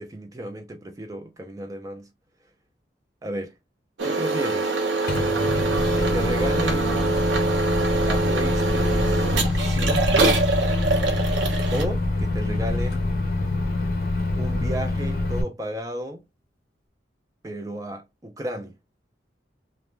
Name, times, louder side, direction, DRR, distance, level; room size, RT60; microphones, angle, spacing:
voice 1, 0.0-2.1 3.2-3.5 4.0-4.7 5.9-7.0 8.0-10.4 11.7-13.0 14.4-16.2 17.4-18.7, right 1 dB, 20° right, 0.4 m, -33 dB
sound 1, 4.0-11.8, right 3 dB, 80° right, 0.7 m, -24 dB
Microwave oven, 5.1-15.4, left 2 dB, 50° left, 0.6 m, -25 dB
Strum, 5.1-11.4, equal, 5° left, 0.7 m, -42 dB
2.5 x 2.2 x 3.0 m
head